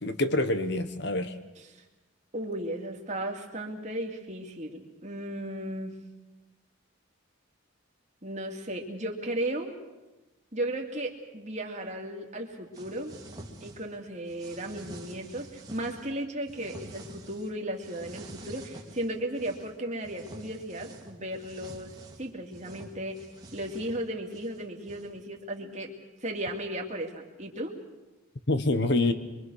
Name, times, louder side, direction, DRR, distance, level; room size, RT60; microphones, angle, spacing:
voice 1, 0.0-1.3 28.5-29.1, left 2 dB, 55° left, 10 dB, 1.2 m, -26 dB
voice 2, 2.3-6.0 8.2-9.8 10.5-13.1 13.6-21.9 22.2-23.3 23.5-25.9 26.2-27.7, right 1 dB, 35° right, 1 dB, 2.6 m, -35 dB
sound 1, 12.7-14.0 14.3-16.1 16.5-17.5 17.8-19.7 20.0-25.2, right 1 dB, 20° right, 2.4 m, -47 dB
24.5 x 23.5 x 6.4 m, 1.1 s
head